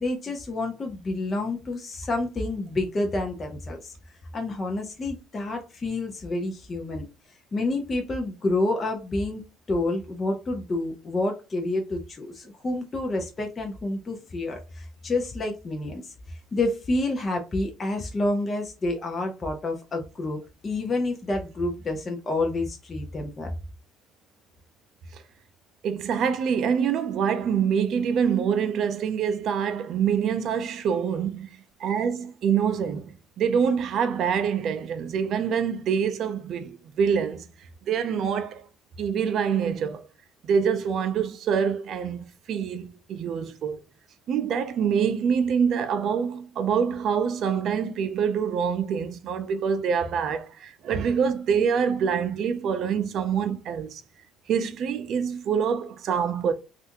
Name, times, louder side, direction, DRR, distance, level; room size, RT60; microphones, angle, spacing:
voice 1, 0.0-3.9 4.3-7.1 7.5-9.4 9.7-16.0 16.3-23.5, left 2 dB, 25° left, 0.7 m, -29 dB
voice 2, 25.8-31.5 31.8-37.5 37.9-38.6 39.0-40.0 40.4-43.8 44.3-54.0 54.5-56.5, right 7 dB, 55° right, 0.5 m, -25 dB
3.3 x 2.5 x 2.9 m
cardioid pair, 125°, 0 cm